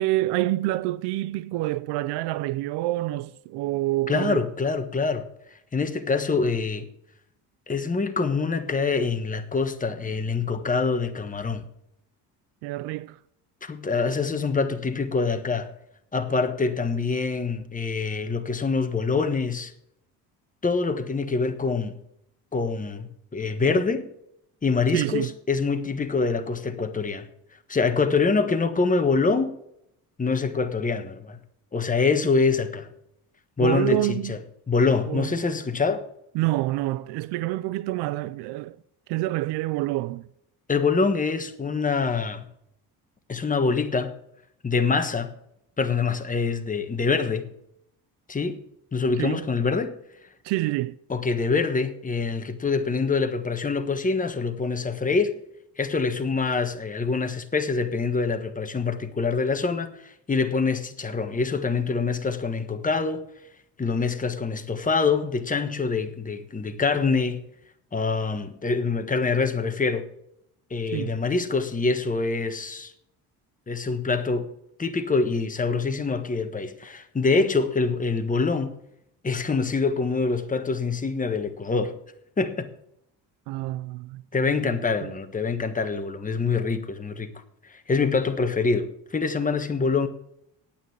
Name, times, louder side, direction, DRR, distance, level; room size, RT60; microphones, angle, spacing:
voice 1, 0.0-4.5 12.6-13.2 24.9-25.3 33.6-34.4 35.1-35.3 36.3-38.8 39.1-40.3 49.2-49.5 50.4-51.0 70.9-71.1 83.5-85.1, right 17 dB, 75° right, 0.5 m, -27 dB
voice 2, 4.1-5.2 5.7-6.9 7.7-11.7 13.6-15.7 16.1-19.7 20.6-22.0 22.5-24.1 24.6-27.3 27.7-29.5 30.2-31.4 31.7-32.9 33.6-34.4 34.7-36.0 40.7-42.4 43.3-44.1 44.6-45.3 45.8-47.5 48.3-48.6 48.9-49.9 51.1-55.4 55.8-63.3 63.8-67.4 67.9-70.1 70.7-72.9 73.7-74.5 74.8-78.7 79.2-81.9 82.4-82.7 84.3-87.3 87.7-90.1, left 4 dB, 20° left, 1.4 m, -25 dB
9.1 x 8.7 x 7.3 m
cardioid pair, 90°, 40 cm